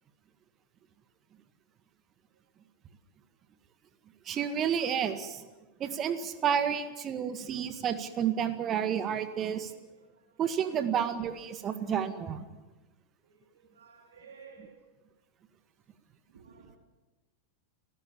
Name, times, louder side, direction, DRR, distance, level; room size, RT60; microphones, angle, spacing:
voice 1, 4.3-5.5 5.8-9.7 10.4-12.5, right 8 dB, 30° right, 1.8 m, -30 dB
voice 2, 6.7-7.5 9.7-10.9 13.2-14.8 16.3-16.8, right 5 dB, 65° right, 3.5 m, -56 dB
29.5 x 16.0 x 7.4 m
figure-of-eight pair, 90°, 0 cm